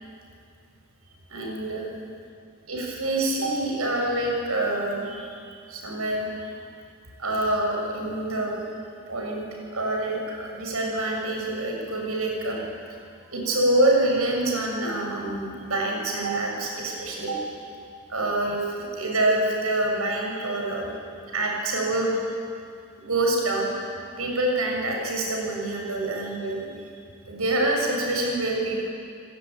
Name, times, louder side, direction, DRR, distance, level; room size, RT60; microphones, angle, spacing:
voice 1, 1.3-1.9 2.7-5.4 5.7-6.5 7.2-8.6 9.1-9.4 9.7-12.6 13.3-17.5 18.1-20.9 21.3-22.2 23.0-23.7 24.2-26.7 27.3-28.9, right 1 dB, 85° right, 0 dB, 7.0 m, -26 dB
28.5 x 20.5 x 9.6 m, 2.4 s
head